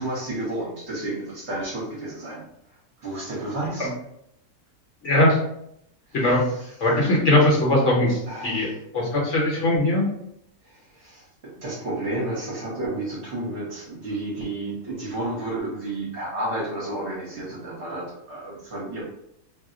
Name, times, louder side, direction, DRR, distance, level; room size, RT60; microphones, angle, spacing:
voice 1, 0.0-2.4 3.0-3.9 6.5-6.7 8.3-8.7 11.0-11.2 11.6-19.0, right 1 dB, 50° right, -5 dB, 1.0 m, -31 dB
voice 2, 5.0-5.4 6.1-6.4 6.8-10.0, left 1 dB, 55° left, -4 dB, 1.0 m, -20 dB
2.7 x 2.0 x 3.6 m, 0.76 s
omnidirectional pair, 1.7 m